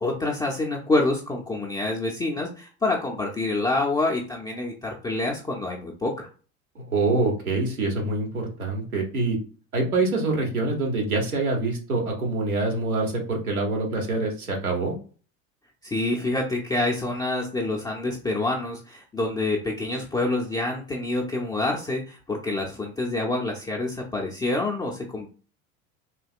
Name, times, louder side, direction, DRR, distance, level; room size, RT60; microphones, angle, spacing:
voice 1, 0.0-6.3 15.8-25.3, left 2 dB, 10° left, -2 dB, 0.4 m, -27 dB
voice 2, 6.7-9.4 9.7-14.9, right 3 dB, 85° right, -1 dB, 1.2 m, -25 dB
3.7 x 2.8 x 2.4 m, 0.38 s
figure-of-eight pair, 75°, 42 cm